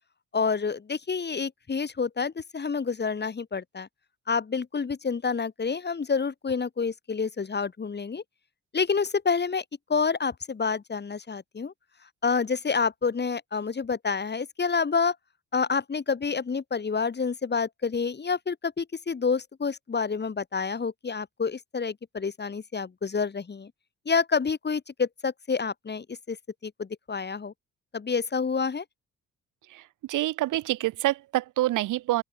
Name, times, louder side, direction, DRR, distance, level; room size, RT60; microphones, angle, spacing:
voice 1, 0.3-3.9 4.3-8.2 8.7-9.6 9.9-11.7 12.2-15.2 15.5-23.7 24.1-26.4 26.6-27.5 27.9-28.8, left 5 dB, 35° left, 4.3 m, -28 dB
voice 2, 30.1-32.2, right 16 dB, 90° right, 5.7 m, -26 dB
open air
cardioid pair, 90°, 30 cm